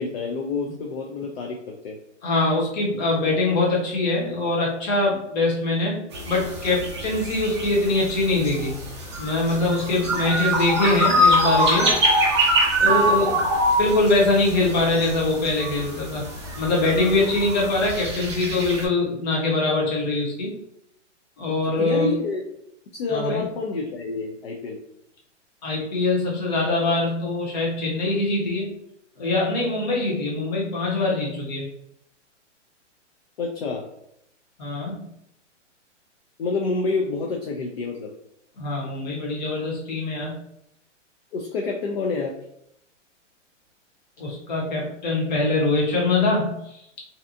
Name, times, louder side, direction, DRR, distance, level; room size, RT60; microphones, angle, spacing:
voice 1, 0.0-2.0 12.9-13.2 21.8-22.6 22.9-24.8 33.4-33.8 36.4-38.1 41.3-42.3, left 4 dB, 55° left, 1 dB, 0.5 m, -28 dB
voice 2, 2.2-6.0 6.3-8.7 9.2-12.0 12.8-13.4 13.8-16.2 16.6-20.5 21.4-22.1 23.1-23.4 25.6-28.7 29.2-31.7 34.6-35.0 38.6-40.3 44.2-46.6, left 2 dB, 35° left, -3 dB, 0.9 m, -23 dB
sound 1, 6.1-18.8, equal, 25° right, 0.4 m, -24 dB
2.7 x 2.2 x 2.5 m, 0.76 s
hypercardioid pair, 160°, 37 cm